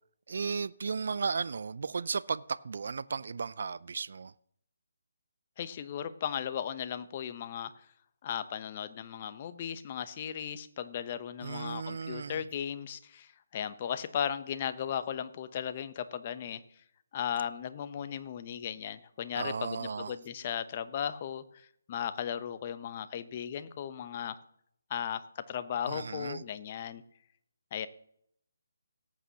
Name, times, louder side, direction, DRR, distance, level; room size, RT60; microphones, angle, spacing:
voice 1, 0.3-4.3 11.4-12.4 19.4-20.2 25.9-26.4, right 5 dB, 60° right, 0.4 m, -35 dB
voice 2, 5.6-7.7 8.2-16.6 17.1-24.4 24.9-27.0 27.7-27.9, left 9 dB, 35° left, 0.8 m, -36 dB
18.0 x 8.3 x 2.9 m
figure-of-eight pair, 150°, 0 cm